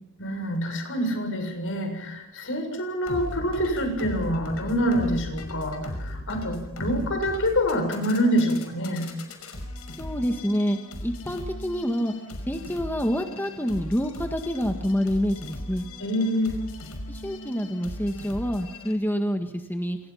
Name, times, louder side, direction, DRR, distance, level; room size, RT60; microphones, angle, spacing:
voice 1, 0.2-9.1 16.0-16.6, equal, 60° left, 5 dB, 7.0 m, -26 dB
sound 1, 3.1-18.9, left 1 dB, 80° left, 5.7 m, -38 dB
voice 2, 10.0-12.1 12.5-15.9 17.1-20.0, equal, 10° left, 5 dB, 1.7 m, -27 dB
29.0 x 27.0 x 5.8 m, 0.88 s
head